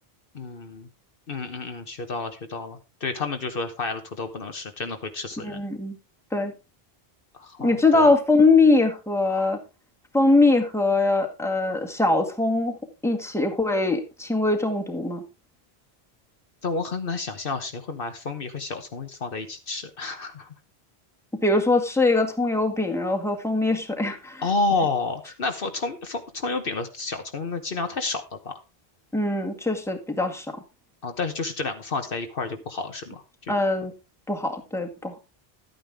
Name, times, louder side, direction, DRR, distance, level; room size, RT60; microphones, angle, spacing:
voice 1, 0.3-0.9 1.3-5.6 7.3-8.1 16.6-20.5 24.4-28.5 31.0-33.5, left 3 dB, 60° left, 7 dB, 1.2 m, -30 dB
voice 2, 5.4-6.0 6.3-6.5 7.6-9.6 10.1-12.8 13.0-15.2 21.4-24.4 29.1-30.5 33.5-33.9 34.3-35.2, left 2 dB, 5° left, 2 dB, 1.8 m, -22 dB
12.0 x 9.1 x 3.5 m, 0.28 s
omnidirectional pair, 1.0 m